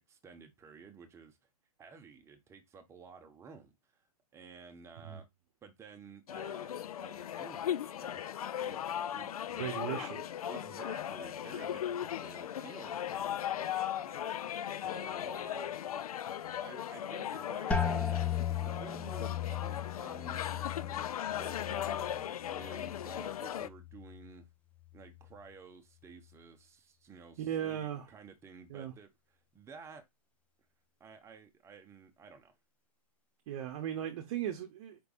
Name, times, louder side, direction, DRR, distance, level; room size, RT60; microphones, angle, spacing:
voice 1, 0.0-1.4 1.8-4.0 4.3-5.2 5.6-8.8 9.1-10.1 10.5-15.8 16.6-18.3 18.6-24.5 24.9-30.0 31.0-32.5, right 5 dB, 15° right, 0.9 m, -53 dB
sound 1, 6.3-23.7, left 10 dB, 70° left, 0.5 m, -38 dB
voice 2, 9.6-10.2 27.4-28.1 28.7-28.9 33.5-35.0, right 10 dB, 45° right, 0.9 m, -37 dB
sound 2, 17.7-23.3 23.7-24.4 24.9-25.3, left 8 dB, 5° left, 0.4 m, -37 dB
5.2 x 3.3 x 2.4 m
hypercardioid pair, 125°, 19 cm